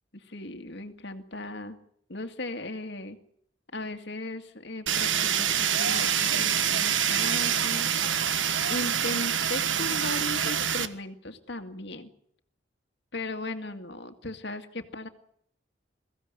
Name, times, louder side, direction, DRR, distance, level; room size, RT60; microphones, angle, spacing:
voice 1, 0.1-1.8 2.1-3.2 3.7-7.9 8.7-12.1 13.1-15.1, left 2 dB, 65° left, 7 dB, 2.2 m, -37 dB
Fire, 4.9-10.9, right 8 dB, 90° right, 1.5 m, -26 dB
22.5 x 16.0 x 9.6 m, 0.68 s
head